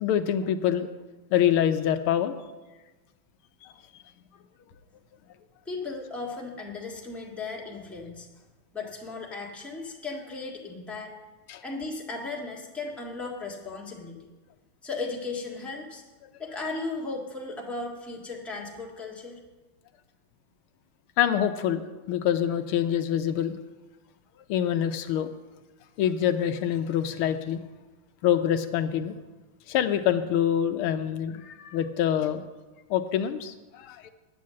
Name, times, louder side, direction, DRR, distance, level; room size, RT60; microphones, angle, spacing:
voice 1, 0.0-0.9 1.3-2.4 3.6-3.7 11.5-11.6 21.2-23.6 24.5-25.3 26.0-27.6 28.2-29.2 29.7-32.4 32.9-34.1, left 10 dB, 80° left, 8 dB, 1.6 m, -25 dB
voice 2, 5.6-8.3 8.7-11.1 11.6-14.3 14.8-16.0 16.4-19.4, left 3 dB, ahead, -2 dB, 1.4 m, -36 dB
10.0 x 8.5 x 7.5 m, 1.2 s
omnidirectional pair, 2.4 m